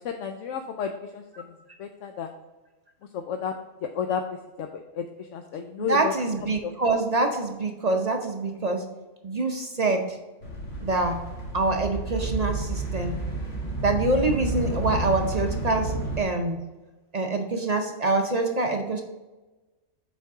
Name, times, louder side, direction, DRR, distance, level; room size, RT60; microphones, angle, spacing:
voice 1, 0.0-1.2 1.8-2.3 3.3-3.5 4.0-4.2 4.6-5.0 5.3-6.1, left 7 dB, 70° left, 5 dB, 0.9 m, -31 dB
voice 2, 5.8-8.8 9.2-10.2 10.8-11.2 11.5-13.2 13.8-16.6 17.1-19.0, right 2 dB, 45° right, 3 dB, 0.5 m, -25 dB
sound 1, 10.4-16.2, right 2 dB, 50° left, 1.8 m, -30 dB
7.2 x 4.5 x 3.5 m, 1.1 s
omnidirectional pair, 1.4 m